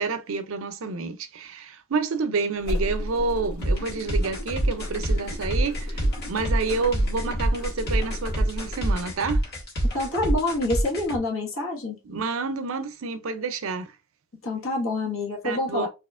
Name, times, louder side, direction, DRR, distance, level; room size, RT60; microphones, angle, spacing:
voice 1, 0.0-9.4 12.0-13.9 15.4-15.9, right 4 dB, 65° right, 0.5 m, -29 dB
sound 1, 2.6-9.1, equal, 85° left, 1.0 m, -34 dB
sound 2, 3.6-11.2, right 1 dB, 50° left, 1.7 m, -26 dB
voice 2, 9.9-12.0 14.4-15.9, left 2 dB, 65° left, 1.6 m, -27 dB
4.1 x 3.0 x 2.5 m
head